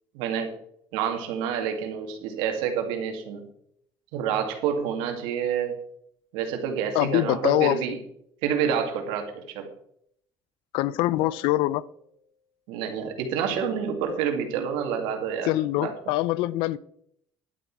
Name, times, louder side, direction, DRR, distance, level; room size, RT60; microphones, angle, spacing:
voice 1, 0.1-0.5 0.9-3.4 4.1-5.7 6.3-8.0 8.4-9.7 12.7-15.5 15.8-15.9, right 7 dB, 90° right, 5 dB, 2.3 m, -28 dB
voice 2, 6.9-7.8 10.7-11.8 15.4-16.8, left 16 dB, 80° left, 20 dB, 0.5 m, -24 dB
sound 1, 11.2-12.3 14.1-14.8, left 5 dB, 40° left, 3.9 m, -47 dB
11.5 x 8.4 x 4.7 m, 0.69 s
cardioid pair, 115°, 8 cm